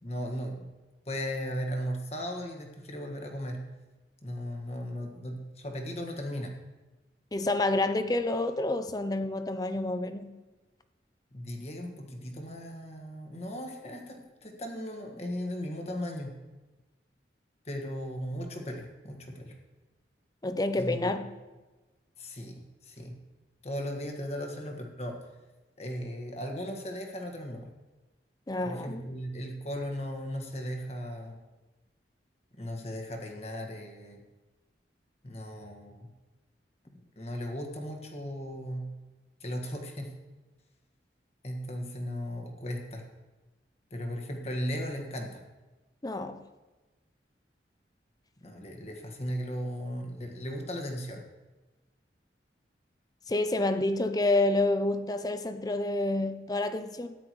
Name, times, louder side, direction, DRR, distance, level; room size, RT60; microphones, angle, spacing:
voice 1, 0.0-0.7 1.0-3.6 4.2-6.5 11.3-16.3 17.6-19.5 20.8-21.1 22.2-23.2 23.6-25.2 25.8-27.7 28.6-31.4 32.6-34.2 35.2-36.1 37.1-38.9 39.4-40.1 41.4-43.0 43.9-45.4 48.4-51.2, equal, 35° left, 1.5 m, -37 dB
voice 2, 7.3-10.4 20.4-21.4 28.5-29.0 46.0-46.5 53.3-57.2, left 2 dB, 20° left, 0.5 m, -28 dB
13.5 x 9.9 x 3.1 m
head